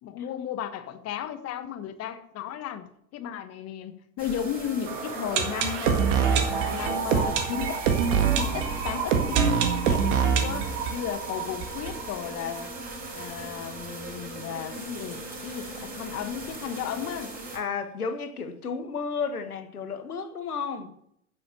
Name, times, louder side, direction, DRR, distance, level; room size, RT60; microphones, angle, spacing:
voice 1, 0.0-2.8 3.1-6.2 6.7-7.8 8.4-12.7 13.1-17.3, left 9 dB, 35° left, 1.3 m, -34 dB
sound 1, 4.2-17.6, right 2 dB, 20° right, 3.9 m, -39 dB
sound 2, 4.9-12.6 12.9-13.0 13.2-13.3 13.8-13.9, right 6 dB, 50° right, 1.9 m, -25 dB
voice 2, 17.5-20.9, left 5 dB, 75° left, 1.4 m, -32 dB
9.8 x 7.6 x 6.5 m
figure-of-eight pair, 80°, 45 cm